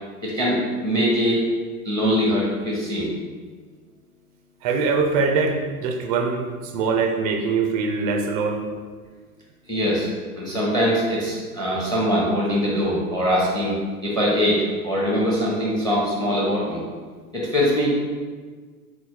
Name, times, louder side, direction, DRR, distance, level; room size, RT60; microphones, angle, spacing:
voice 1, 0.2-1.5 1.8-3.1 9.7-10.1 10.3-16.8 17.3-18.0, equal, 10° left, -4 dB, 0.8 m, -22 dB
voice 2, 4.6-8.6, right 4 dB, 30° right, 3 dB, 0.4 m, -23 dB
4.0 x 2.2 x 4.6 m, 1.5 s
hypercardioid pair, 100°, 46 cm